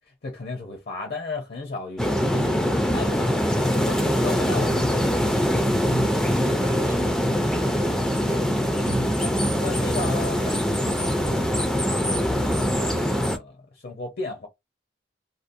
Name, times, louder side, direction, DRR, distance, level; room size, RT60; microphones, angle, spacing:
voice 1, 0.2-3.4 3.7-5.2 9.2-14.5, left 3 dB, 60° left, 0.6 m, -35 dB
sound 1, 2.0-13.4, equal, 5° left, 0.3 m, -23 dB
voice 2, 5.9-7.2 8.3-9.2, right 1 dB, 50° right, 0.7 m, -34 dB
2.7 x 2.0 x 2.5 m
head